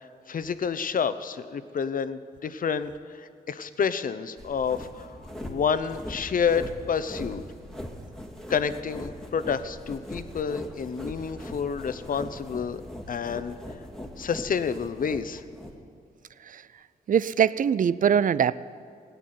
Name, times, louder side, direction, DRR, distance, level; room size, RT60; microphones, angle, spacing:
voice 1, 0.3-7.4 8.5-12.8 13.1-13.6 14.2-15.4, left 6 dB, 55° left, 12 dB, 0.8 m, -29 dB
sound 1, 4.4-15.7, equal, 5° left, 2.1 m, -41 dB
voice 2, 17.1-18.5, right 8 dB, 55° right, 18 dB, 0.5 m, -22 dB
17.0 x 8.3 x 9.3 m, 2.3 s
cardioid pair, 70°, 16 cm